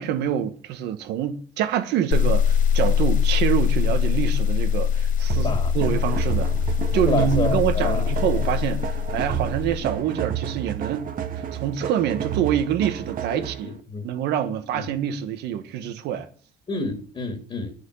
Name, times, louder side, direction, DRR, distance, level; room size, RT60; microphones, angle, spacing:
voice 1, 0.0-6.5 6.9-8.8 9.1-11.1 11.6-13.7 14.0-16.3, right 10 dB, 85° right, 1.4 m, -26 dB
sound 1, 2.1-9.9, left 8 dB, 50° left, 0.7 m, -22 dB
sound 2, 5.3-13.7, right 9 dB, 55° right, 1.4 m, -31 dB
voice 2, 5.4-5.7 7.1-8.1 13.3-14.1 14.7-14.8 16.7-17.7, left 3 dB, 30° left, 2.2 m, -29 dB
10.0 x 6.3 x 8.0 m
cardioid pair, 110°, 17 cm